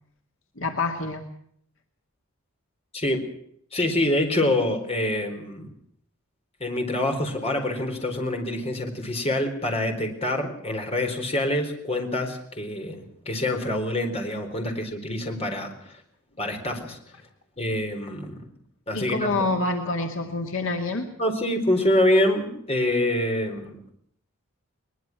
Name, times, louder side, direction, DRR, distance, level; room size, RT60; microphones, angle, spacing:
voice 1, 0.6-1.2 18.9-21.1, left 3 dB, 60° left, 4 dB, 2.3 m, -27 dB
voice 2, 2.9-3.2 3.7-5.7 6.6-15.9 16.4-17.0 17.6-18.5 18.9-19.4 21.2-23.8, left 1 dB, 25° left, 4 dB, 4.2 m, -26 dB
22.0 x 21.0 x 6.1 m, 0.68 s
head